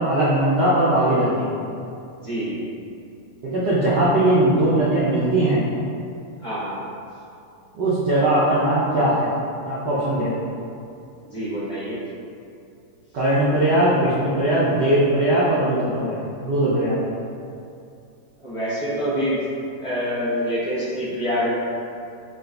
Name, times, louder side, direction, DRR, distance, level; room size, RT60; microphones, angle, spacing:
voice 1, 0.0-1.4 3.4-5.6 7.7-9.3 9.6-10.4 13.1-17.0, right 1 dB, 70° right, -9 dB, 1.0 m, -20 dB
voice 2, 2.2-2.6 6.4-6.8 11.2-12.0 18.4-19.4 19.8-21.5, equal, 30° left, -13 dB, 0.5 m, -26 dB
3.9 x 2.2 x 3.7 m, 2.5 s
omnidirectional pair, 2.4 m